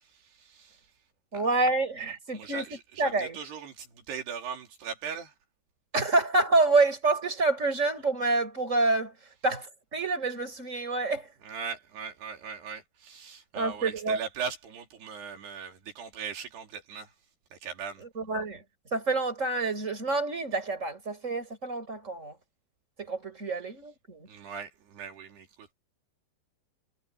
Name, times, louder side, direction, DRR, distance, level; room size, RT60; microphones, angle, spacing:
voice 1, 0.4-0.8 2.3-5.3 11.4-17.1 17.5-18.0 24.3-25.7, right 6 dB, 75° right, 5.2 m, -39 dB
voice 2, 1.3-2.7 3.0-3.4 5.9-9.1 9.4-11.3 13.5-14.2 18.0-18.6 18.9-22.3 23.0-24.3, right 3 dB, 15° right, 6.8 m, -27 dB
omnidirectional pair, 4.7 m